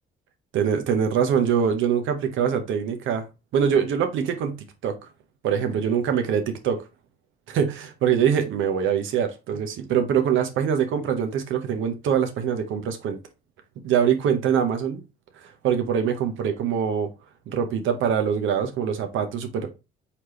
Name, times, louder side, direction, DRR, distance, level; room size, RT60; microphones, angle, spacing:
voice 1, 0.5-3.3 3.5-5.1 5.4-6.8 7.5-13.2 13.8-15.0 15.4-17.1 17.5-19.7, right 8 dB, 75° right, 0.9 m, -24 dB
4.2 x 3.4 x 3.1 m
supercardioid pair, 75°, 20 cm